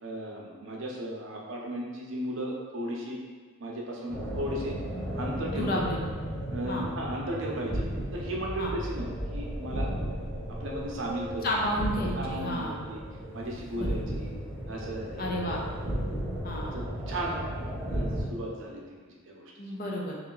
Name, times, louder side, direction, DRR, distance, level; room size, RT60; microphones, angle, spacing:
voice 1, 0.0-3.2 3.6-4.7 5.1-5.8 6.5-7.8 8.1-9.1 9.3-9.9 10.6-11.5 12.2-13.0 13.3-14.3 14.7-15.6 16.7-17.4 17.9-19.5, right 1 dB, 65° right, -2 dB, 0.6 m, -35 dB
sound 1, 4.1-18.2, equal, 5° left, 1.1 m, -35 dB
voice 2, 5.5-6.1 6.7-6.8 8.6-8.7 11.4-12.8 13.7-14.0 15.2-15.6 16.4-16.8 19.6-20.2, left 1 dB, 45° left, -2 dB, 0.5 m, -31 dB
3.0 x 2.7 x 3.8 m, 1.5 s
head